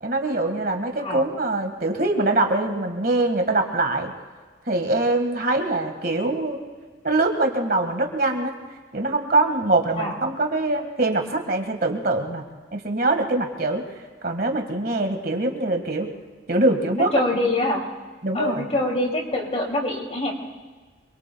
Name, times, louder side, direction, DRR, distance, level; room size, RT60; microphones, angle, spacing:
voice 1, 0.0-4.1 4.7-6.6 7.0-8.6 8.9-12.4 12.7-16.1 16.5-17.1 18.2-18.7, right 2 dB, 50° right, 4 dB, 1.7 m, -23 dB
voice 2, 17.0-17.8 18.3-20.3, left 1 dB, 35° left, 1 dB, 2.7 m, -24 dB
27.0 x 23.0 x 2.3 m, 1.4 s
head